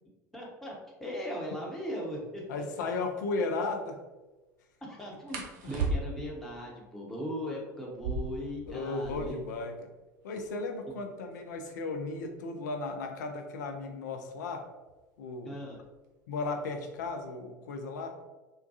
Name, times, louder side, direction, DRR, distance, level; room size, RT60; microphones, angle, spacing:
voice 1, 0.3-0.7 1.0-2.4 4.9-5.4 5.7-9.3 15.4-15.8, equal, ahead, -4 dB, 0.8 m, -38 dB
voice 2, 2.5-4.0 8.7-9.9 10.2-14.6 15.2-15.6 16.3-18.1, left 3 dB, 65° left, 4 dB, 0.5 m, -35 dB
sound 1, 2.6-2.8 5.3-6.4 7.8-9.5 9.8-9.9 10.1-10.7 11.3-13.9 14.9-15.2 15.6-16.1 16.4-17.1, right 3 dB, 60° right, 0.6 m, -37 dB
3.5 x 2.2 x 2.8 m, 1.1 s
figure-of-eight pair, 70°, 10 cm